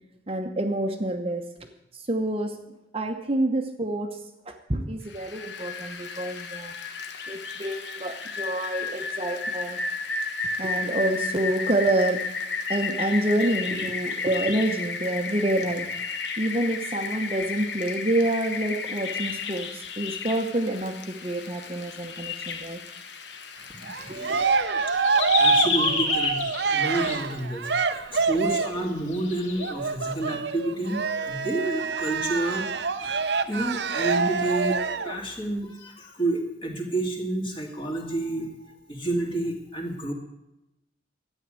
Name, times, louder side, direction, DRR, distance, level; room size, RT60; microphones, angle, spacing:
voice 1, 0.3-1.4 2.1-2.5 2.9-4.2 4.5-6.7 7.3-9.8 10.6-12.2 12.7-22.8 24.1-24.4, right 1 dB, 30° right, 5 dB, 1.0 m, -27 dB
Rain, 5.1-24.6, left 4 dB, 65° left, 1.3 m, -33 dB
Cheering, 23.8-28.9 29.6-35.2, right 4 dB, 60° right, 0.7 m, -26 dB
voice 2, 24.0-24.4 25.4-26.4 26.7-33.1 33.5-34.8 35.0-38.5 38.9-40.1, right 2 dB, 25° left, 1 dB, 2.6 m, -29 dB
sound 1, 24.3-27.2 28.3-28.4 29.1-29.7, left 4 dB, 85° left, 2.4 m, -28 dB
12.5 x 9.3 x 7.6 m, 0.90 s
head